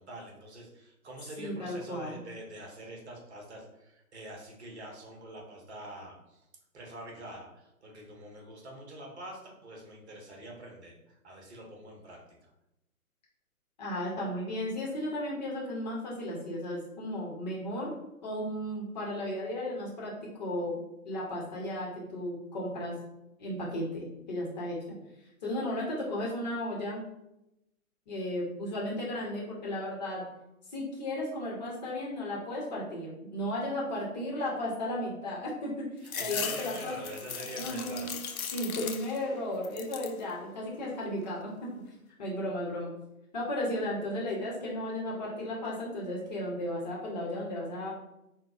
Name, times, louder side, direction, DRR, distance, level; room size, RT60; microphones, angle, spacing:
voice 1, 0.0-6.4 6.7-12.5 36.0-38.1, right 1 dB, 50° right, -1 dB, 1.1 m, -45 dB
voice 2, 1.4-2.2 13.8-17.9 18.2-22.9 23.4-25.0 25.4-27.0 28.1-30.2 30.7-35.9 36.2-36.9 37.5-38.1 38.5-41.7 42.2-42.9 43.3-47.9, left 1 dB, 30° left, -4 dB, 1.0 m, -34 dB
sound 1, 36.0-39.3 39.6-40.2 40.7-41.4, left 7 dB, 70° left, 0.5 m, -38 dB
5.7 x 2.3 x 2.4 m, 0.88 s
figure-of-eight pair, 130°, 44 cm